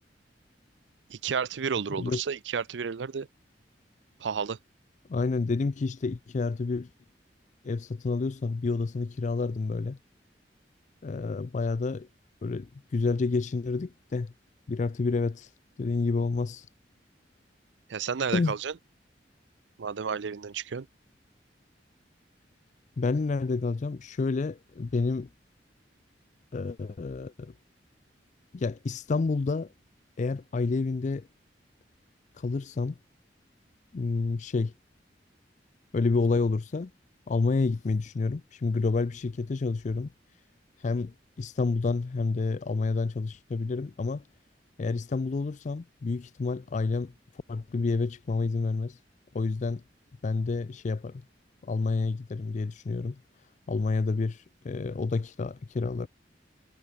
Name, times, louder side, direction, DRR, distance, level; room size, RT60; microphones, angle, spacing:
voice 1, 1.1-3.3 4.2-4.6 17.9-18.7 19.8-20.9, right 6 dB, 85° right, 0.5 m, -31 dB
voice 2, 5.1-6.9 7.6-10.0 11.0-12.1 12.4-14.3 14.7-15.5 15.8-16.7 18.3-18.5 23.0-25.3 26.5-27.5 28.5-29.7 30.2-31.3 32.4-33.0 33.9-34.7 35.9-36.9 37.3-40.1 40.8-44.2 44.8-47.1 47.5-49.0 49.3-49.8 50.2-51.2 51.6-53.2 53.7-56.1, left 3 dB, 45° left, 0.4 m, -29 dB
head